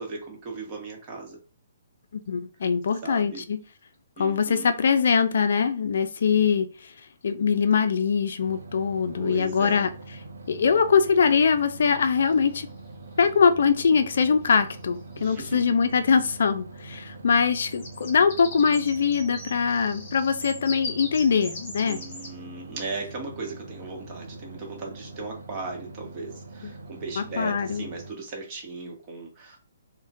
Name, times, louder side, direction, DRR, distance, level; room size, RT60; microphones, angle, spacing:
voice 1, 0.0-1.4 3.0-3.5 4.2-4.7 9.2-9.8 15.2-15.7 21.8-29.6, right 3 dB, 25° right, 0.9 m, -37 dB
voice 2, 2.3-3.6 4.2-6.9 7.2-9.9 10.5-12.7 13.2-22.0 26.6-26.7 27.2-27.9, left 6 dB, 65° left, 0.3 m, -22 dB
sound 1, 8.4-28.1, right 2 dB, 90° right, 0.6 m, -43 dB
sound 2, 12.2-12.8 14.5-14.6 14.8-15.1 17.4-22.3, left 2 dB, 40° left, 1.5 m, -40 dB
3.7 x 2.1 x 2.6 m
hypercardioid pair, 155°, 0 cm